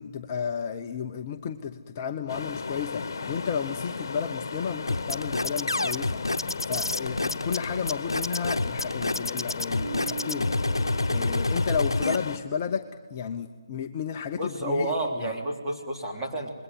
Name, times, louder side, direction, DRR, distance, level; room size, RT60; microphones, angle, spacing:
voice 1, 0.0-6.4 6.7-10.5 11.1-12.8 13.1-14.9 15.2-15.3, left 7 dB, 30° left, 5 dB, 0.9 m, -32 dB
sound 1, 2.3-12.4, left 4 dB, 50° left, 1.8 m, -35 dB
sound 2, 4.9-12.2, left 2 dB, 90° left, 0.9 m, -28 dB
Bass guitar, 9.8-12.2, right 5 dB, 70° right, 1.2 m, -41 dB
voice 2, 14.4-16.6, right 1 dB, 10° right, -3 dB, 3.5 m, -30 dB
27.0 x 22.0 x 8.1 m, 1.5 s
figure-of-eight pair, 155°, 2 cm